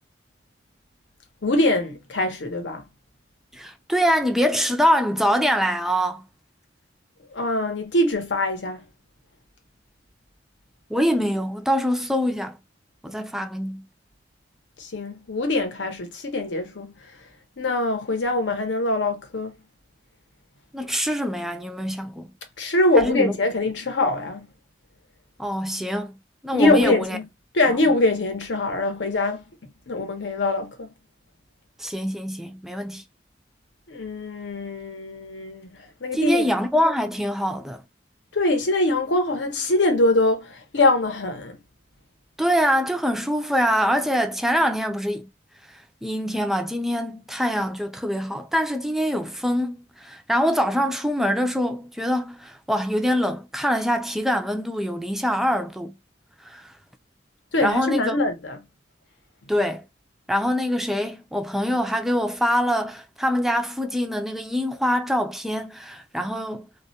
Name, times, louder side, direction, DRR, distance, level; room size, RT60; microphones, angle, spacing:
voice 1, 1.4-2.8 7.3-8.8 14.8-16.9 17.6-19.5 22.6-24.5 26.5-27.2 27.5-29.4 29.9-30.9 33.9-35.7 36.0-36.5 38.3-41.6 57.5-58.6, left 2 dB, 75° left, 0.8 m, -23 dB
voice 2, 3.5-6.2 10.9-12.6 13.0-13.8 20.7-22.3 23.0-23.3 25.4-26.1 26.4-27.2 31.8-33.0 36.1-37.8 42.4-45.3 45.7-55.9 56.4-56.7 57.6-58.2 59.5-59.8 60.3-66.7, equal, ahead, 0.3 m, -24 dB
2.3 x 2.1 x 2.7 m
head